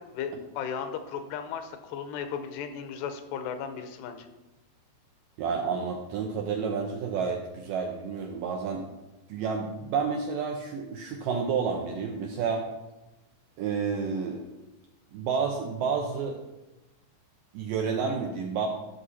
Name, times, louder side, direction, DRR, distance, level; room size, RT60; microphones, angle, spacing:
voice 1, 0.0-4.3, left 7 dB, 80° left, 8 dB, 2.9 m, -35 dB
voice 2, 5.4-8.9 9.3-12.7 13.6-14.4 15.1-16.4 17.5-18.7, right 5 dB, 80° right, 2 dB, 2.0 m, -30 dB
13.0 x 6.1 x 4.1 m, 1.0 s
omnidirectional pair, 4.8 m